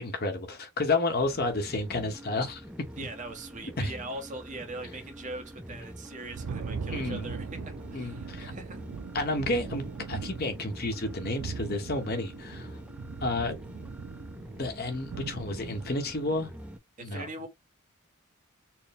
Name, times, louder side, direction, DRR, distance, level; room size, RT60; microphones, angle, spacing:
voice 1, 0.0-2.6 3.0-3.1 3.8-3.9 6.9-7.3 7.9-8.5 9.1-12.7 13.2-13.6 14.6-16.5 17.0-17.3, left 2 dB, 45° left, 0.9 m, -31 dB
sound 1, 1.2-16.8, equal, 5° right, 0.4 m, -46 dB
voice 2, 3.0-8.9 17.0-17.5, right 2 dB, 35° right, 1.0 m, -41 dB
Thunder, 5.8-15.9, right 5 dB, 75° right, 0.4 m, -40 dB
4.4 x 2.1 x 3.4 m
head